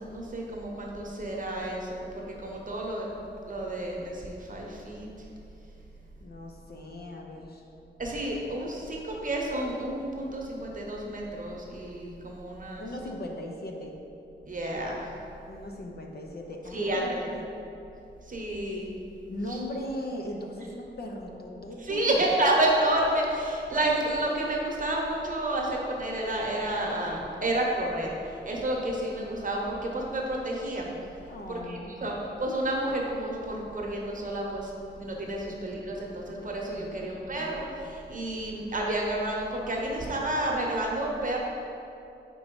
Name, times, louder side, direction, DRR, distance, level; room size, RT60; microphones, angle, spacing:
voice 1, 0.0-3.1 3.5-5.1 8.0-12.9 14.4-15.1 16.7-17.3 18.3-18.9 21.8-28.1 28.5-30.9 31.5-34.7 35.0-41.4, right 1 dB, 45° right, -1 dB, 0.9 m, -30 dB
voice 2, 6.2-7.6 12.8-13.9 15.5-17.5 19.3-22.2 31.3-32.0 35.4-35.6 36.8-37.1, left 1 dB, 55° left, 1 dB, 0.7 m, -38 dB
4.6 x 4.1 x 5.3 m, 2.8 s
wide cardioid pair, 105°, 19 cm